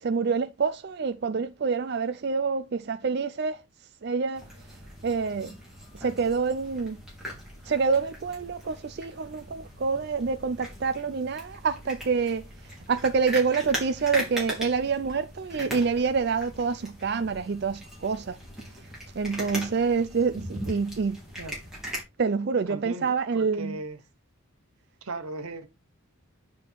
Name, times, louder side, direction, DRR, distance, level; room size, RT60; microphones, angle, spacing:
voice 1, 0.0-3.6 4.0-4.4 5.0-5.5 5.9-7.0 7.7-12.5 12.9-18.4 19.1-21.2 22.2-23.8, right 5 dB, 50° right, 0.4 m, -27 dB
sound 1, 4.3-22.0, equal, ahead, 3.2 m, -40 dB
voice 2, 22.7-24.0 25.0-25.7, right 2 dB, 90° right, 1.1 m, -37 dB
9.4 x 4.2 x 4.5 m
head